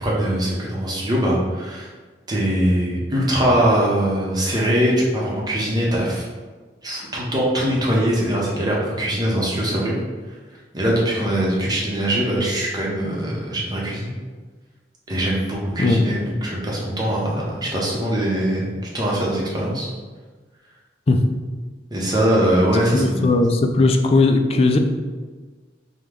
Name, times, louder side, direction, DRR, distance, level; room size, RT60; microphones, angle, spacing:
voice 1, 0.0-1.9 2.3-6.2 6.8-10.0 10.7-14.1 15.1-19.9 21.9-23.3, right 1 dB, 25° right, -4 dB, 0.9 m, -22 dB
voice 2, 22.9-24.8, left 3 dB, 35° left, 5 dB, 0.4 m, -17 dB
5.0 x 2.3 x 3.6 m, 1.4 s
head